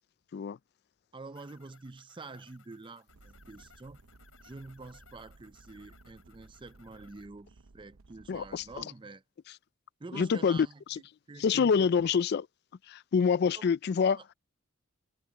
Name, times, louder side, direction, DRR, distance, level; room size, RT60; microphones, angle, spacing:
voice 1, 1.1-4.0 4.4-9.2 10.0-11.9 13.6-13.7, right 3 dB, 25° right, 0.5 m, -47 dB
sound 1, 1.3-7.3, left 6 dB, 80° left, 7.8 m, -62 dB
sound 2, 3.1-8.8, right 3 dB, 85° right, 0.7 m, -58 dB
voice 2, 8.3-8.9 10.1-11.0 11.4-12.5 12.9-14.2, left 6 dB, 55° left, 0.3 m, -27 dB
head